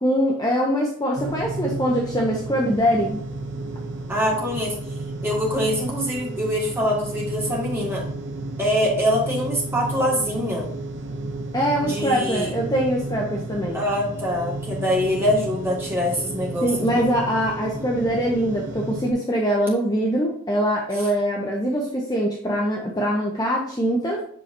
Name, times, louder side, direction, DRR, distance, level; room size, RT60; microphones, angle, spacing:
voice 1, 0.0-3.2 11.5-13.8 16.6-24.2, equal, 20° left, -2 dB, 0.8 m, -23 dB
sound 1, 1.2-19.1, right 2 dB, 55° right, 0.9 m, -32 dB
voice 2, 4.1-4.7 5.2-8.0 8.6-10.7 11.8-12.5 13.7-17.1, equal, 10° right, -4 dB, 1.8 m, -24 dB
7.6 x 5.7 x 2.6 m, 0.64 s
head